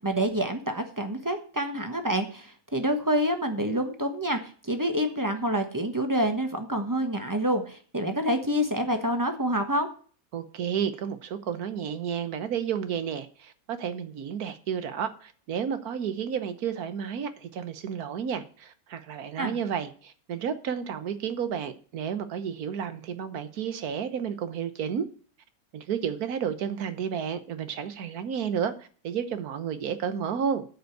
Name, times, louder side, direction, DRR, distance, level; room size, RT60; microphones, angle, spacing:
voice 1, 0.0-9.9 19.4-19.6, equal, 15° right, 1.2 m, -27 dB
voice 2, 10.3-25.1 25.7-30.7, right 7 dB, 90° right, 1.5 m, -31 dB
9.1 x 5.3 x 7.9 m
omnidirectional pair, 1.5 m